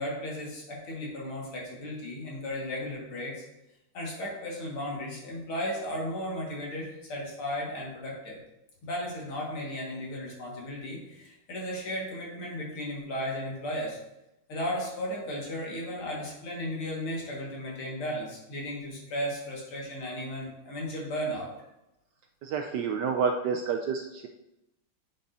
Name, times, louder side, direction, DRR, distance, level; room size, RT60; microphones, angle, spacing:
voice 1, 0.0-3.4 3.9-8.4 8.8-14.0 14.5-21.5, equal, 90° left, -3 dB, 2.7 m, -35 dB
voice 2, 22.4-24.3, right 6 dB, 75° right, 3 dB, 0.9 m, -29 dB
8.4 x 6.6 x 2.7 m, 0.91 s
omnidirectional pair, 2.3 m